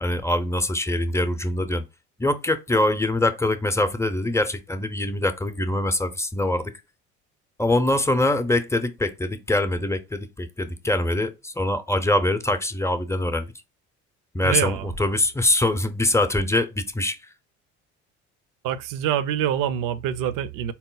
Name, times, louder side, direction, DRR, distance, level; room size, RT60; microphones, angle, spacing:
voice 1, 0.0-1.8 2.2-6.7 7.6-13.5 14.3-17.2, left 1 dB, 10° left, 0.7 m, -23 dB
voice 2, 14.4-14.9 18.6-20.7, right 10 dB, 65° right, 0.6 m, -25 dB
4.2 x 2.0 x 3.8 m
hypercardioid pair, 65°, 34 cm